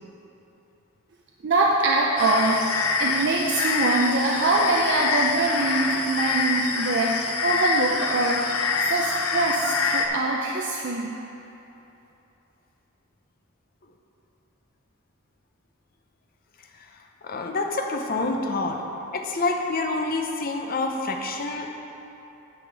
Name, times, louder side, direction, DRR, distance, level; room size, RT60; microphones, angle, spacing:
voice 1, 1.4-11.1, right 2 dB, 55° right, -2 dB, 0.5 m, -24 dB
sound 1, 2.2-10.1, left 4 dB, 80° left, 0.6 m, -26 dB
voice 2, 16.7-18.8 19.1-21.7, left 3 dB, 45° left, 3 dB, 0.7 m, -27 dB
9.6 x 6.5 x 4.0 m, 2.9 s
head